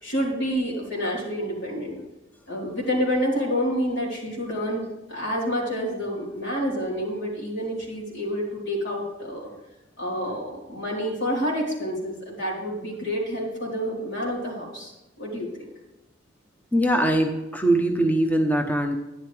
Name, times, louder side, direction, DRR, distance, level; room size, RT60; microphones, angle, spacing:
voice 1, 0.0-2.0 2.5-4.8 5.1-9.5 10.0-14.9 15.2-15.5, equal, 60° left, -4 dB, 3.9 m, -28 dB
voice 2, 16.7-19.0, right 1 dB, 10° left, 3 dB, 0.9 m, -22 dB
12.0 x 10.5 x 3.4 m, 1.0 s
head